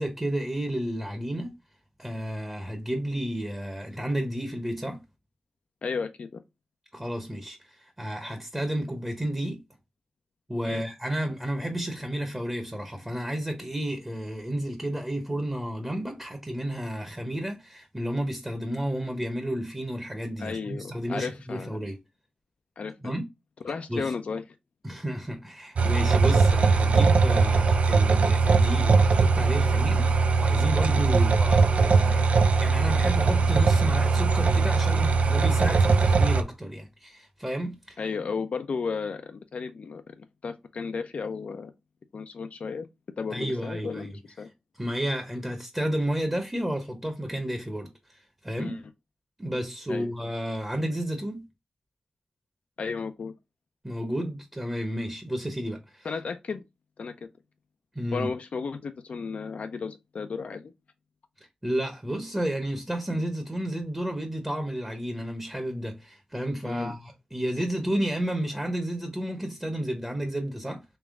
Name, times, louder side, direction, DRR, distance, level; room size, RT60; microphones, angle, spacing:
voice 1, 0.0-1.5 2.0-5.0 6.9-9.6 10.5-22.0 23.0-23.2 23.9-24.1 24.8-38.0 43.3-44.1 44.8-48.8 49.4-51.4 53.8-56.1 57.9-58.3 61.6-70.8, right 1 dB, 15° right, 1.0 m, -31 dB
voice 2, 5.8-6.4 10.6-10.8 20.4-21.8 22.8-23.2 23.6-24.4 30.9-31.0 38.0-41.7 42.1-42.9 43.2-44.5 48.6-48.8 49.9-50.1 52.8-53.3 56.0-56.6 57.0-57.1 58.1-60.7 66.6-66.9, left 5 dB, 80° left, 0.5 m, -34 dB
sound 1, 25.8-36.4, right 4 dB, 75° right, 0.4 m, -21 dB
3.5 x 3.0 x 3.5 m
cardioid pair, 55°, 2 cm